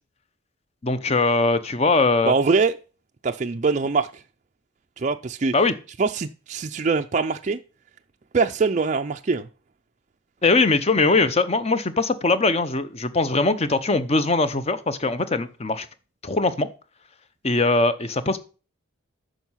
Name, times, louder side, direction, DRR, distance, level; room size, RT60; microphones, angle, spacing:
voice 1, 0.8-2.3 5.5-5.7 10.4-15.9 16.2-16.7 17.4-18.4, left 3 dB, 30° left, 0.7 m, -21 dB
voice 2, 2.3-2.7 3.2-4.2 5.0-5.5 6.0-7.6 8.3-9.5, right 4 dB, 35° right, 0.4 m, -23 dB
9.2 x 6.3 x 5.6 m
head